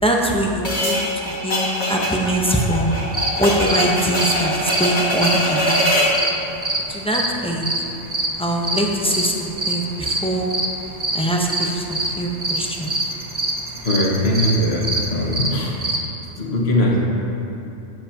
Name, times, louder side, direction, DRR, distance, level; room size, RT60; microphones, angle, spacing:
voice 1, 0.0-2.9 3.4-5.9 6.9-7.7 8.4-10.5 11.1-12.9, right 1 dB, 5° left, -1 dB, 0.8 m, -22 dB
sound 1, 0.6-6.2, equal, 40° left, 1.7 m, -22 dB
sound 2, 2.9-16.0, right 1 dB, 20° right, 0.9 m, -25 dB
voice 2, 13.8-15.8 16.4-17.0, left 1 dB, 60° left, -2 dB, 1.7 m, -20 dB
12.5 x 9.7 x 2.9 m, 2.9 s
omnidirectional pair, 1.2 m